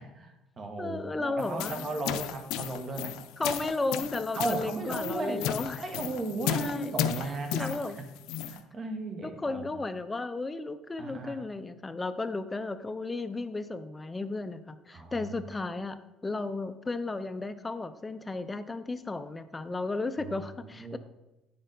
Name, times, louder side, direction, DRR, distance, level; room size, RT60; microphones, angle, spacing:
voice 1, 0.0-3.2 4.3-5.4 5.8-8.1 8.5-9.6 11.0-11.4 14.9-15.3 20.3-21.0, right 2 dB, 30° right, 5 dB, 1.1 m, -36 dB
voice 2, 0.8-1.8 3.4-5.8 6.5-6.9 7.5-8.0 9.2-21.0, left 3 dB, 15° left, 11 dB, 0.4 m, -34 dB
sound 1, 1.4-8.6, left 10 dB, 75° left, 0.5 m, -34 dB
8.9 x 6.6 x 3.9 m, 1.0 s
cardioid pair, 145°, 0 cm